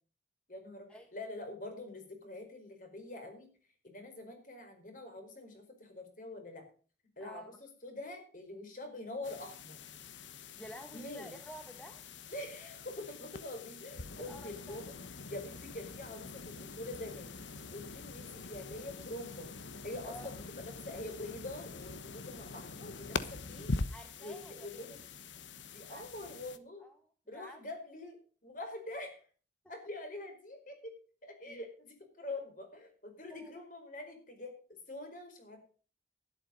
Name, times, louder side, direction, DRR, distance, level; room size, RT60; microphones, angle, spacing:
voice 1, 0.5-3.5 3.8-6.7 7.2-9.8 10.9-11.4 12.3-14.9 15.3-17.3 17.7-19.5 19.8-23.7 24.2-25.0 25.7-26.8 27.3-29.2 29.7-30.9 31.2-34.6 34.9-35.6, left 2 dB, 45° left, 5 dB, 4.6 m, -45 dB
voice 2, 7.2-7.6 10.6-12.1 14.2-14.8 20.0-20.4 23.9-24.9 25.9-26.4 26.8-27.6 33.3-33.6, equal, 5° left, 5 dB, 1.2 m, -51 dB
sound 1, 9.2-26.6, left 3 dB, 80° left, 1.1 m, -44 dB
12.0 x 11.0 x 5.2 m, 0.39 s
head